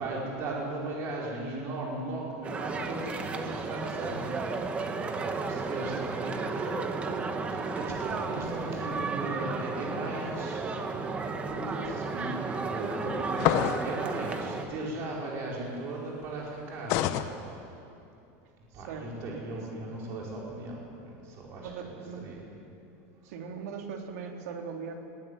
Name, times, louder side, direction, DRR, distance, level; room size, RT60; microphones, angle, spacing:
voice 1, 0.0-4.4 5.5-17.0 18.7-22.4, right 2 dB, 35° right, -3 dB, 4.9 m, -37 dB
sound 1, 2.4-14.6, right 4 dB, 15° right, 1.1 m, -33 dB
sound 2, 13.4-13.9 16.9-17.3, left 12 dB, 40° left, 0.9 m, -26 dB
voice 2, 18.7-19.8 21.5-22.3 23.2-24.9, right 5 dB, 75° right, 2 dB, 3.2 m, -40 dB
20.5 x 15.5 x 9.9 m, 2.7 s
supercardioid pair, 180°, 8 cm